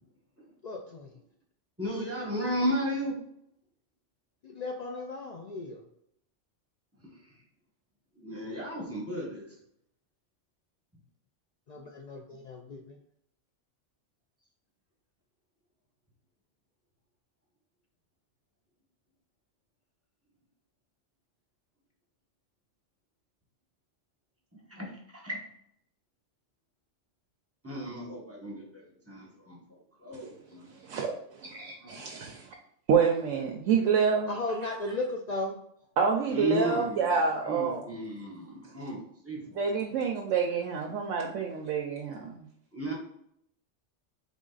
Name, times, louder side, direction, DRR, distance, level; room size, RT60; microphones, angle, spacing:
voice 1, 0.6-1.1 4.4-5.8 11.7-13.0 34.3-35.6, left 2 dB, 85° left, 1 dB, 0.3 m, -36 dB
voice 2, 1.8-3.1 8.2-9.4 24.7-24.9 25.2-25.4 27.6-29.6 30.0-30.6 31.8-31.9 36.3-37.0 37.4-39.0 39.2-39.4 42.7-42.9, equal, 10° right, -3 dB, 1.2 m, -33 dB
voice 3, 30.8-32.5 32.9-34.3 36.0-37.9 39.5-42.5, right 6 dB, 80° right, 1 dB, 0.9 m, -28 dB
3.6 x 3.4 x 3.9 m, 0.71 s
omnidirectional pair, 1.3 m